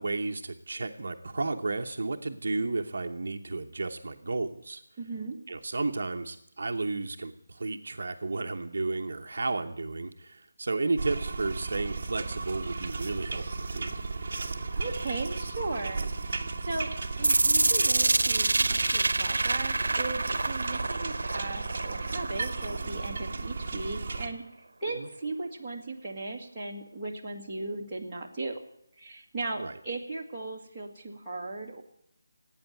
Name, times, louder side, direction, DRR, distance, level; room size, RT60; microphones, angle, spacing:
voice 1, 0.0-4.8 5.5-14.0 25.0-25.1 29.6-29.7, right 3 dB, 45° right, 4 dB, 0.9 m, -33 dB
voice 2, 5.0-5.4 14.7-16.9 17.2-24.4 24.8-28.6 29.0-31.8, right 3 dB, 5° right, -11 dB, 1.8 m, -37 dB
sound 1, 11.0-24.3, right 3 dB, 30° right, 1.4 m, -35 dB
sound 2, 17.2-23.2, right 2 dB, 90° right, 0.7 m, -27 dB
17.0 x 9.0 x 9.2 m, 0.75 s
figure-of-eight pair, 180°, 0 cm